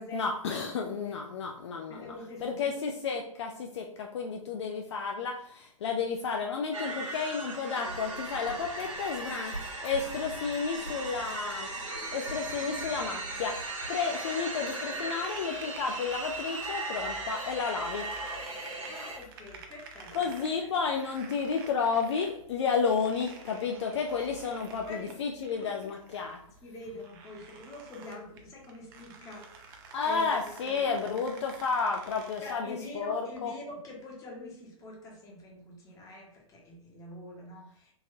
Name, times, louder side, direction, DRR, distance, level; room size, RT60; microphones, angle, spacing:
voice 1, 0.1-2.1 2.4-9.5 9.8-11.7 12.1-13.6 13.9-18.0 20.1-26.4 29.9-33.5, left 5 dB, 55° left, 2 dB, 0.4 m, -31 dB
voice 2, 1.9-2.7 18.8-20.1 24.8-25.1 25.6-25.9 26.6-29.8 30.0-30.8 32.4-37.9, left 2 dB, 20° left, -1 dB, 1.0 m, -45 dB
sound 1, 6.7-19.2, right 2 dB, 65° right, 1.2 m, -38 dB
sound 2, 7.8-13.9, right 2 dB, 85° right, 1.3 m, -46 dB
sound 3, 13.9-32.5, right 4 dB, 40° right, 0.6 m, -50 dB
3.8 x 2.6 x 2.7 m, 0.66 s
figure-of-eight pair, 115°, 18 cm